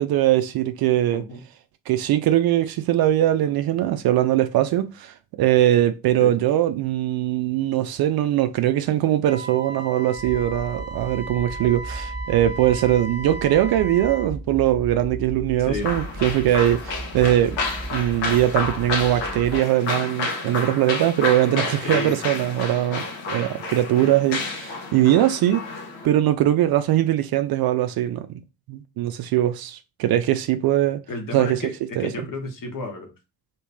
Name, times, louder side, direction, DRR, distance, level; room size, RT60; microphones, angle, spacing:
voice 1, 0.0-1.2 1.9-17.6 17.9-25.6 26.0-28.3 28.7-31.0 31.3-31.6 32.0-32.1, right 12 dB, 50° right, 0.5 m, -21 dB
Wind instrument woodwind instrument, 9.3-14.3, right 3 dB, 35° right, 0.9 m, -36 dB
sound 1, 10.2-19.6, right 1 dB, 10° left, 0.9 m, -36 dB
sound 2, 15.8-26.1, left 3 dB, 70° left, 1.0 m, -30 dB
voice 2, 21.8-22.2 31.1-33.1, left 3 dB, 40° left, 1.2 m, -32 dB
2.9 x 2.8 x 3.4 m
hypercardioid pair, 40°, 49 cm